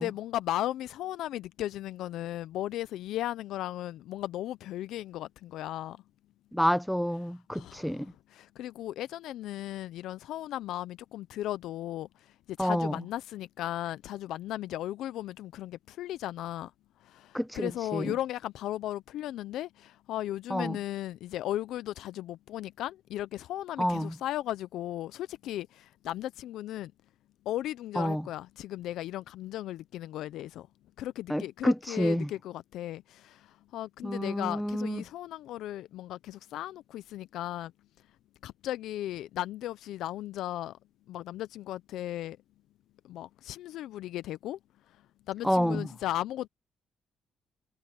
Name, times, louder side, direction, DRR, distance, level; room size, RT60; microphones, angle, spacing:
voice 1, 0.0-6.0 7.5-12.1 12.5-16.7 17.0-26.9 27.5-30.7 31.0-37.7 38.4-40.8 41.1-42.4 43.1-44.6 45.3-46.5, left 13 dB, 85° left, 0.4 m, -36 dB
voice 2, 6.5-8.1 12.6-13.0 17.3-18.1 20.5-20.8 23.8-24.2 28.0-28.3 31.3-32.3 34.0-35.0 45.4-45.9, equal, ahead, 0.7 m, -29 dB
cardioid pair, 90°, 0 cm